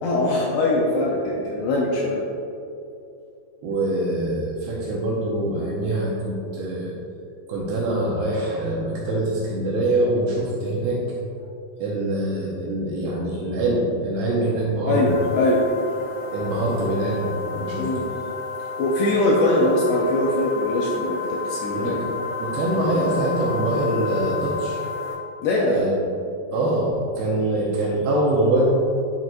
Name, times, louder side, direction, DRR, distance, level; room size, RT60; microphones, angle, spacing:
voice 1, 0.0-2.2 14.9-15.6 17.8-18.0 18.8-22.0 25.4-25.8, left 2 dB, 85° left, -3 dB, 2.4 m, -22 dB
voice 2, 3.6-6.9 7.5-11.0 11.8-15.1 16.3-17.9 21.8-22.1 22.4-24.8 25.6-25.9 26.5-28.6, right 1 dB, 80° right, -4 dB, 2.5 m, -24 dB
sound 1, 15.1-25.1, left 4 dB, 60° left, 3.1 m, -31 dB
9.3 x 5.9 x 2.5 m, 2.6 s
omnidirectional pair, 5.4 m